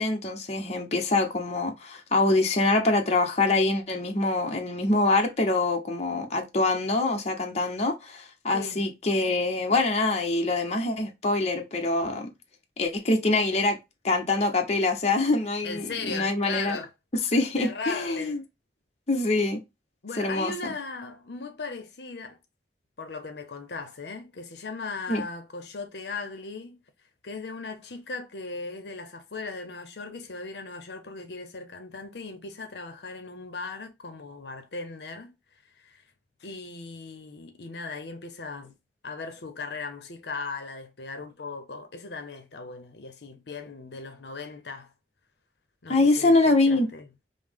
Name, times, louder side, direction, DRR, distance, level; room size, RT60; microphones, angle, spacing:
voice 1, 0.0-12.3 12.8-13.8 14.0-16.8 17.3-18.4 19.1-19.6 20.2-20.5 25.1-25.2 45.9-46.9, left 2 dB, 40° left, 0.7 m, -24 dB
voice 2, 15.6-16.9 17.6-18.3 20.0-22.4 23.0-26.8 27.2-35.3 35.8-36.0 36.4-38.7 39.0-44.9 45.8-47.1, left 4 dB, 70° left, 0.7 m, -38 dB
5.4 x 2.0 x 3.5 m
head